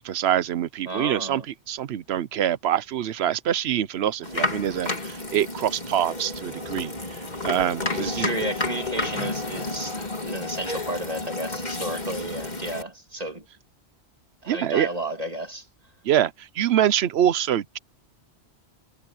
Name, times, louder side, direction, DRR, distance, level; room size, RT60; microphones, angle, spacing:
voice 1, 0.0-1.4 1.7-6.9 7.4-8.3 14.5-14.9 16.0-17.8, right 10 dB, 70° right, 0.9 m, -25 dB
voice 2, 0.9-1.5 8.0-13.4 14.4-15.7, right 1 dB, 35° right, 2.4 m, -32 dB
sound 1, 4.2-12.8, left 2 dB, 40° left, 3.0 m, -31 dB
sound 2, 8.1-12.1, left 5 dB, 20° left, 4.7 m, -41 dB
omnidirectional pair, 1.2 m